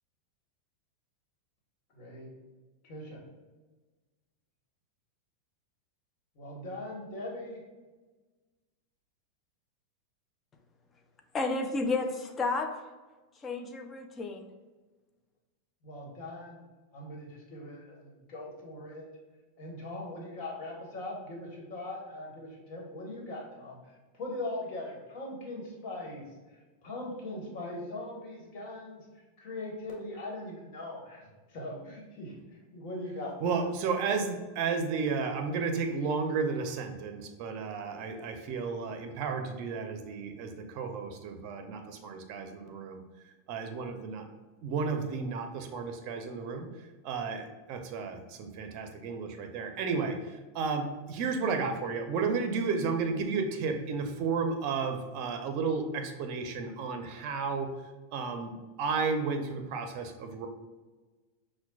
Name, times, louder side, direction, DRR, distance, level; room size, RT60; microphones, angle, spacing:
voice 1, 1.9-2.3 2.8-3.2 6.4-7.6 15.8-16.6 16.9-19.0 19.6-26.2 26.5-29.1 29.4-32.3 32.7-33.7, left 1 dB, 50° left, -2 dB, 1.3 m, -40 dB
voice 2, 11.3-12.7 13.4-14.5, left 3 dB, 25° left, 5 dB, 0.5 m, -31 dB
voice 3, 33.4-43.0 43.5-44.2 44.6-46.7 47.0-57.7 58.1-58.5 58.8-60.5, right 5 dB, 50° right, 6 dB, 0.5 m, -32 dB
5.8 x 2.2 x 2.3 m, 1.3 s
hypercardioid pair, 120°, 0 cm